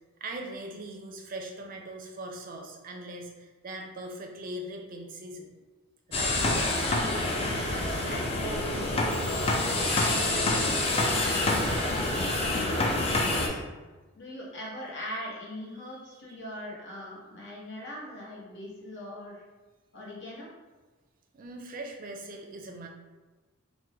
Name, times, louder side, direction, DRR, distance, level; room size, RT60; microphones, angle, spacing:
voice 1, 0.2-5.5 6.1-6.8 15.8-16.4 21.3-22.9, right 1 dB, 40° right, 2 dB, 0.4 m, -41 dB
sound 1, 6.1-13.5, left 2 dB, 30° left, 0.4 m, -27 dB
voice 2, 7.7-9.1 9.8-13.6 14.1-19.4 19.9-20.5, left 1 dB, 60° left, -5 dB, 0.9 m, -41 dB
3.0 x 2.1 x 3.4 m, 1.2 s
head